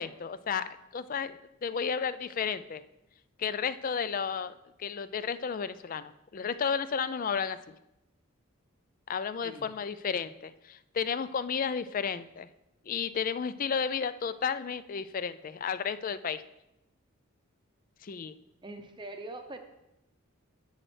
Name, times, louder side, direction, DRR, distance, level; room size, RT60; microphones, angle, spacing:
voice 1, 0.0-2.8 3.4-4.5 4.8-7.7 9.1-12.5 12.9-16.4 18.0-18.4, left 6 dB, 40° left, 14 dB, 0.4 m, -33 dB
voice 2, 18.6-19.6, right 2 dB, 20° right, 6 dB, 0.7 m, -42 dB
10.0 x 8.9 x 3.3 m, 0.89 s
head